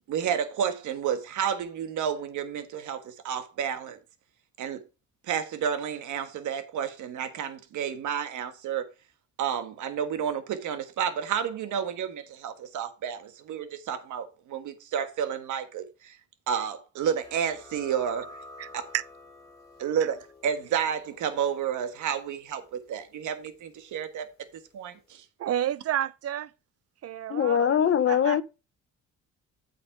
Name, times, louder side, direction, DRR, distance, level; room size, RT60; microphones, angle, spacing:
voice 1, 0.1-4.0 4.6-4.8 5.2-8.9 9.4-16.2 16.5-18.3 18.7-18.8 19.8-24.3 24.7-25.2, right 8 dB, 80° right, 1.4 m, -31 dB
sound 1, 17.2-24.5, left 2 dB, 10° left, 3.3 m, -51 dB
voice 2, 18.6-19.0 25.4-26.5 27.0-27.8 28.1-28.4, right 11 dB, 55° right, 0.6 m, -30 dB
voice 3, 27.3-28.4, left 8 dB, 45° left, 0.9 m, -22 dB
8.6 x 5.5 x 4.6 m
cardioid pair, 90°, 30 cm